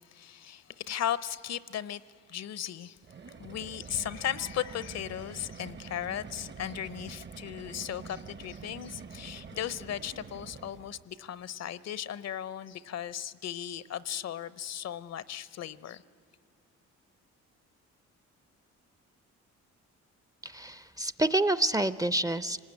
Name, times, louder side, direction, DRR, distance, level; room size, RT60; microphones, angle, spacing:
voice 1, 0.0-2.0 2.3-3.0 3.4-16.0, left 10 dB, 60° left, 0.7 m, -36 dB
sound 1, 3.0-11.1, right 5 dB, 40° right, 0.9 m, -46 dB
voice 2, 20.4-22.7, right 1 dB, 10° right, 0.5 m, -28 dB
26.0 x 19.0 x 9.8 m
cardioid pair, 90°, 30 cm